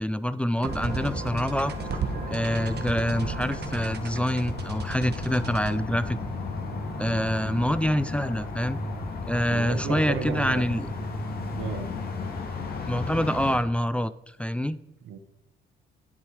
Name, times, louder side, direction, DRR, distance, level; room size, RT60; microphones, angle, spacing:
voice 1, 0.0-1.7 2.3-6.2 7.0-8.8 9.3-10.9 12.9-14.1 14.4-14.8, equal, 5° left, 14 dB, 0.4 m, -26 dB
sound 1, 0.6-8.0, right 5 dB, 55° right, 1.3 m, -36 dB
sound 2, 0.7-13.6, left 3 dB, 50° left, 2.4 m, -34 dB
voice 2, 9.5-10.8 11.6-11.9 15.0-15.2, right 6 dB, 80° right, 10 dB, 1.1 m, -34 dB
11.0 x 7.6 x 4.9 m, 0.90 s
cardioid pair, 90°, 20 cm